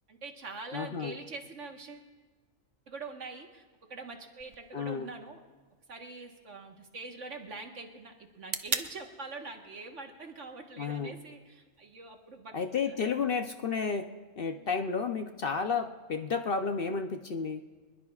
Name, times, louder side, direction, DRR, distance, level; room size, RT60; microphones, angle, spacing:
voice 1, 0.1-2.1 2.9-3.6 3.9-5.4 5.9-12.5 12.9-13.2 14.5-14.7, right 3 dB, 65° right, 3 dB, 1.7 m, -44 dB
voice 2, 0.7-1.2 4.7-5.1 10.8-11.1 12.5-14.1 14.4-17.6, left 5 dB, 50° left, 6 dB, 0.8 m, -32 dB
sound 1, 4.4-12.4, right 4 dB, 40° right, 0.7 m, -43 dB
26.0 x 21.0 x 2.4 m, 1.4 s
omnidirectional pair, 1.4 m